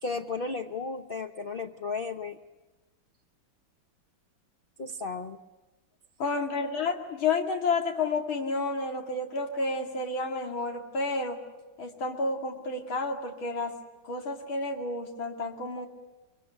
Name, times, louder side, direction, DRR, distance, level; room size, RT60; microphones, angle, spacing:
voice 1, 0.0-2.4 4.8-5.4, left 4 dB, 40° left, 6 dB, 0.9 m, -34 dB
voice 2, 6.2-11.4 11.8-13.7 14.0-15.9, left 3 dB, 90° left, 4 dB, 3.2 m, -30 dB
24.5 x 24.0 x 9.9 m, 1.1 s
omnidirectional pair, 2.1 m